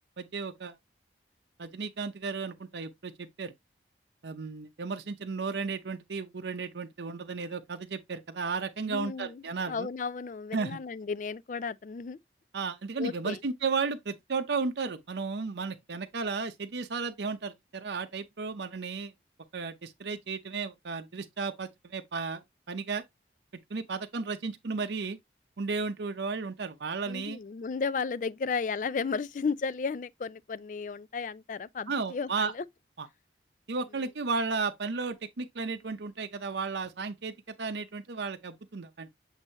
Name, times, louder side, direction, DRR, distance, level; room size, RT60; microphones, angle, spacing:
voice 1, 0.2-0.8 1.6-3.5 4.2-9.9 10.5-10.8 12.5-19.1 19.5-22.4 22.7-23.0 23.7-25.2 25.6-27.4 31.9-32.5 33.0-33.1 33.7-39.1, right 4 dB, 80° right, 0.7 m, -34 dB
voice 2, 8.8-12.2 13.0-13.4 27.1-32.6, left 5 dB, 45° left, 0.3 m, -34 dB
8.0 x 2.7 x 4.3 m
head